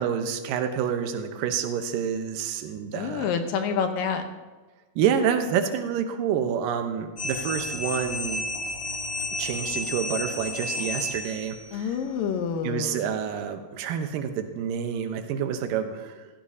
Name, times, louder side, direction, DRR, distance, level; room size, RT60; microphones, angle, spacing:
voice 1, 0.0-3.3 5.0-8.4 9.4-11.9 12.6-16.3, right 8 dB, 75° right, 6 dB, 2.6 m, -28 dB
voice 2, 2.9-4.2 11.7-13.1, left 6 dB, 75° left, 6 dB, 2.6 m, -28 dB
sound 1, 7.2-11.7, left 2 dB, 50° left, 1.3 m, -32 dB
16.5 x 15.0 x 2.8 m, 1.2 s
omnidirectional pair, 4.2 m